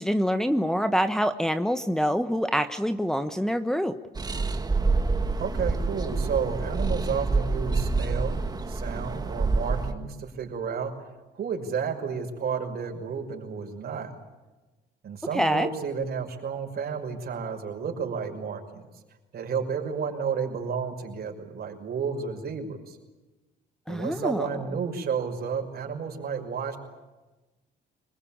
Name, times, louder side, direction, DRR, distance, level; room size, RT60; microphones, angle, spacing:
voice 1, 0.0-3.9 15.3-15.7 23.9-24.5, equal, 5° left, 7 dB, 1.1 m, -25 dB
sound 1, 4.1-9.9, right 3 dB, 20° right, 2.0 m, -27 dB
voice 2, 5.4-10.9 11.3-14.1 15.0-18.8 19.3-23.0 23.9-26.8, right 6 dB, 60° right, 3 dB, 5.9 m, -31 dB
25.5 x 22.0 x 8.7 m, 1.1 s
cardioid pair, 120°, 18 cm